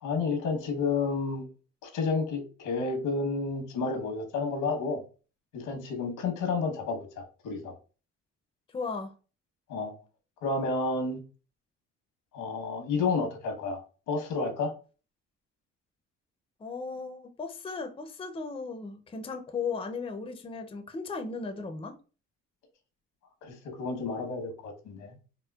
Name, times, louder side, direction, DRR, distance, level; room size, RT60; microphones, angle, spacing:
voice 1, 0.0-1.5 1.8-5.0 5.5-7.7 9.7-9.9 10.4-11.2 12.3-13.8 14.1-14.7 23.4-25.2, left 4 dB, 85° left, 1.1 m, -30 dB
voice 2, 8.7-9.1 16.6-22.0, left 4 dB, 20° left, 0.5 m, -36 dB
4.3 x 2.1 x 2.3 m
cardioid pair, 90°, 30 cm